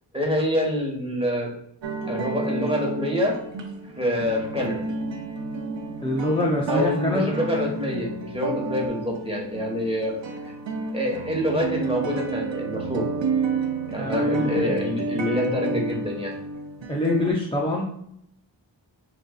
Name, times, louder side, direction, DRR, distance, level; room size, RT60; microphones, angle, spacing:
voice 1, 0.1-1.5 2.1-3.4 4.0-4.8 6.7-10.1 10.9-13.1 13.9-16.3, equal, 15° right, -1 dB, 1.4 m, -26 dB
sound 1, 1.8-17.3, right 3 dB, 80° right, 0.7 m, -30 dB
voice 2, 6.0-7.4 14.0-14.9 16.9-17.9, left 1 dB, 10° left, -3 dB, 0.7 m, -25 dB
7.7 x 2.6 x 2.4 m, 0.71 s
wide cardioid pair, 60°, 44 cm